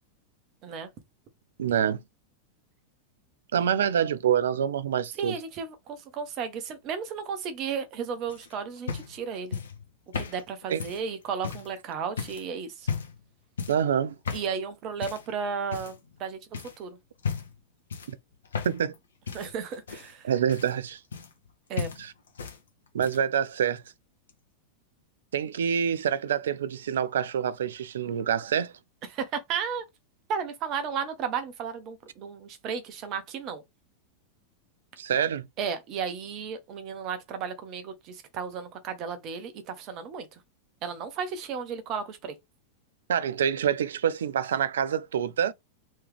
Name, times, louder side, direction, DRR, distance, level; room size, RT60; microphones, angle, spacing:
voice 1, 1.6-2.0 3.5-5.4 10.7-10.8 13.7-14.2 18.1-18.2 18.6-18.9 20.2-21.0 22.0-22.1 22.9-23.8 25.3-28.7 35.0-35.5 43.1-45.5, right 8 dB, 65° right, 0.4 m, -26 dB
voice 2, 5.2-9.6 10.1-12.9 14.3-16.4 16.8-17.0 19.3-20.3 21.7-21.9 29.1-29.8 30.3-33.6 35.6-40.4 40.8-42.4, right 6 dB, 35° right, 0.9 m, -34 dB
sound 1, 8.3-11.7 12.2-12.5 12.8-13.2 13.6-13.9 14.2-14.5 15.0-15.3 15.7-16.2 16.5-16.8 17.2-17.6 17.9-19.0 19.2-21.5 21.8-22.6 22.9-23.3 24.3-24.4, left 6 dB, 65° left, 1.0 m, -35 dB
3.3 x 3.1 x 3.3 m
figure-of-eight pair, 90°, 0 cm